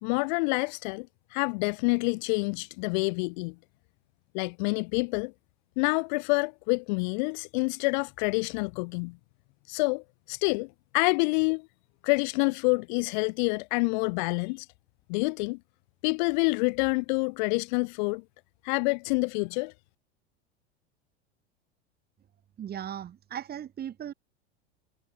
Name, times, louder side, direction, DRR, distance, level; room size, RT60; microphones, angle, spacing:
voice 1, 0.0-3.5 4.3-5.3 5.8-9.2 9.7-11.7 12.0-14.7 15.1-15.6 16.0-18.2 18.6-19.7, left 31 dB, 45° left, 0.5 m, -27 dB
voice 2, 22.6-24.1, right 10 dB, 30° right, 2.2 m, -37 dB
figure-of-eight pair, 90°, 33 cm